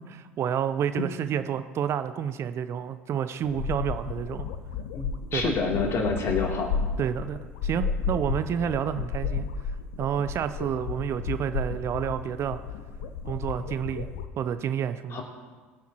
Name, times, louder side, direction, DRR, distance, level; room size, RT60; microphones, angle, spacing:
voice 1, 0.1-4.4 5.3-5.5 7.0-9.4 10.0-12.6 13.3-14.1 14.4-15.2, right 9 dB, 40° right, 11 dB, 0.6 m, -29 dB
sound 1, 3.4-14.3, left 5 dB, 65° left, 0.9 m, -33 dB
voice 2, 4.9-6.7 15.1-15.2, left 4 dB, 40° left, 0 dB, 3.0 m, -28 dB
21.0 x 9.4 x 3.0 m, 1.4 s
figure-of-eight pair, 70°, 7 cm